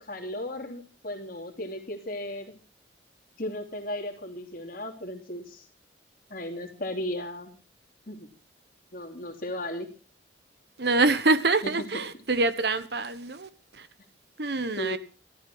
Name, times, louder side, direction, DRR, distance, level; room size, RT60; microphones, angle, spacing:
voice 1, 0.0-2.5 3.4-5.6 6.3-7.5 8.1-8.3 8.9-9.9 14.8-15.0, left 1 dB, 50° left, 3.1 m, -35 dB
voice 2, 10.8-13.9 14.4-15.0, right 3 dB, 60° right, 1.2 m, -25 dB
14.0 x 13.5 x 6.2 m
head